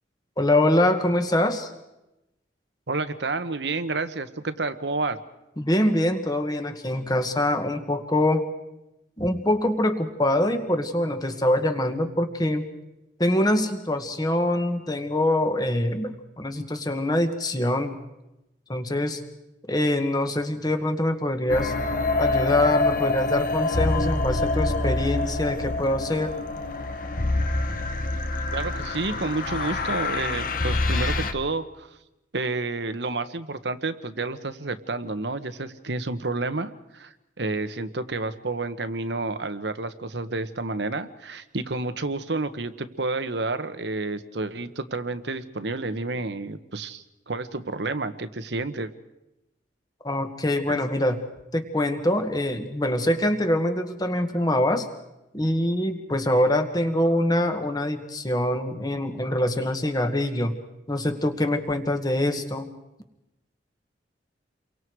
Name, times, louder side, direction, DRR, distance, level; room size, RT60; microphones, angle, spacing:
voice 1, 0.4-1.7 5.6-8.5 9.2-12.7 13.2-18.0 18.7-19.2 19.7-21.7 22.2-26.3 50.0-51.2 51.5-54.9 55.3-60.5 60.9-62.7, left 1 dB, 20° left, 7 dB, 1.8 m, -24 dB
voice 2, 2.9-5.2 28.5-31.9 32.3-48.9, right 3 dB, 75° right, 10 dB, 1.3 m, -30 dB
sound 1, 21.5-31.3, left 2 dB, 50° left, 1.4 m, -26 dB
30.0 x 23.5 x 4.8 m, 0.93 s
head